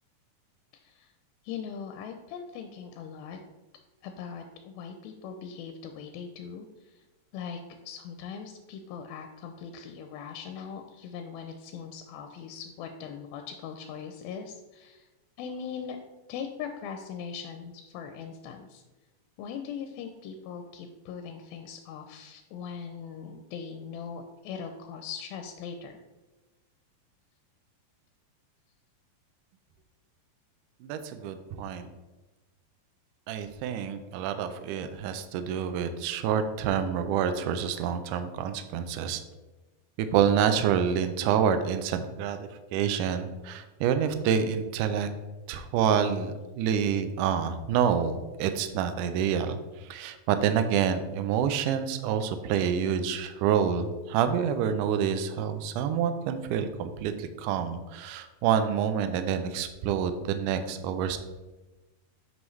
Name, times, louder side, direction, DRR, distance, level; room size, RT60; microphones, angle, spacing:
voice 1, 1.4-3.4 4.0-6.7 7.3-7.6 7.9-15.1 15.4-16.0 16.3-18.8 19.4-26.0, left 7 dB, 90° left, 5 dB, 2.4 m, -40 dB
voice 2, 30.8-31.9 33.3-39.2 40.1-45.1 45.5-49.6 49.8-61.2, right 8 dB, 85° right, 9 dB, 1.8 m, -27 dB
7.9 x 5.4 x 3.1 m, 1.2 s
omnidirectional pair, 4.2 m